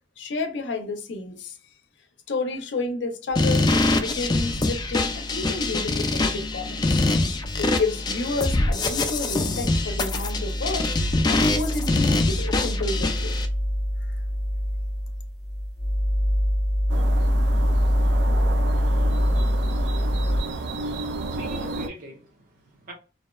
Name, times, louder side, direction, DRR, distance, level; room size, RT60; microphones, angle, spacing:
voice 1, 0.2-1.6 2.3-7.0 7.6-10.9 11.3-13.4, left 3 dB, 90° left, 0.5 m, -30 dB
sound 1, 3.3-20.4, equal, 5° right, 0.7 m, -26 dB
sound 2, 3.4-13.5, left 2 dB, 25° left, 0.3 m, -24 dB
sound 3, 16.9-21.9, right 2 dB, 75° right, 0.4 m, -31 dB
voice 2, 21.3-22.9, equal, 55° right, 0.7 m, -41 dB
2.7 x 2.1 x 2.2 m
head